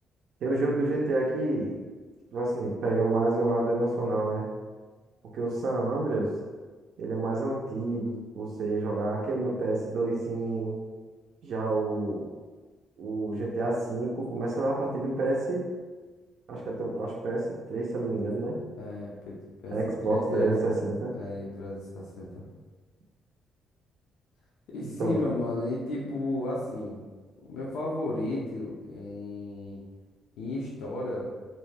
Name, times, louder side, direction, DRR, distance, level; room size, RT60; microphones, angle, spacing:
voice 1, 0.4-1.8 2.3-4.5 5.3-6.3 7.0-10.8 11.4-12.3 13.0-15.7 16.5-18.5 19.7-21.1 25.0-25.2, right 2 dB, 70° right, -3 dB, 0.4 m, -28 dB
voice 2, 18.8-19.4 19.6-20.5 21.1-22.4 24.7-27.0 27.5-29.8 30.4-31.3, left 2 dB, 85° left, -4 dB, 0.5 m, -33 dB
2.6 x 2.1 x 3.2 m, 1.3 s
cardioid pair, 90°, 0 cm